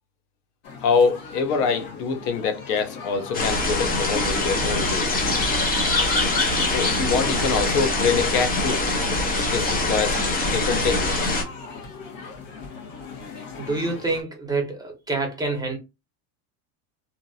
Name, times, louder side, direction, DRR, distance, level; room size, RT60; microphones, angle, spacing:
sound 1, 0.6-14.2, left 4 dB, 60° left, 1.4 m, -38 dB
voice 1, 0.8-5.1 6.7-8.8 9.4-11.3, left 5 dB, 85° left, 1.0 m, -25 dB
sound 2, 3.3-11.4, left 2 dB, 20° left, 0.7 m, -23 dB
voice 2, 13.6-15.8, right 3 dB, 10° right, 1.0 m, -27 dB
2.9 x 2.6 x 2.6 m
supercardioid pair, 125°, 45 cm